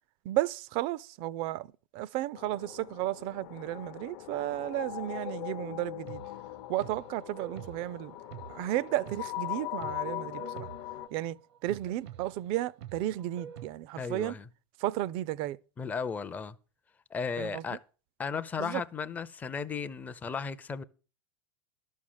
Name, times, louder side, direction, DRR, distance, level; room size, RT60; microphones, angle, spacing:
voice 1, 0.2-6.2 6.7-8.1 8.5-10.7 11.1-11.4 11.6-14.4 14.8-15.6 17.4-17.8 18.6-18.8, right 14 dB, 40° right, 0.5 m, -33 dB
sound 1, 2.3-11.1, left 16 dB, 45° left, 0.7 m, -40 dB
sound 2, 6.1-13.7, right 9 dB, 75° right, 0.9 m, -48 dB
voice 2, 14.0-14.4 15.8-16.5 17.1-17.8 18.2-20.8, left 5 dB, 10° left, 0.5 m, -35 dB
12.5 x 6.4 x 7.2 m
supercardioid pair, 155°, 14 cm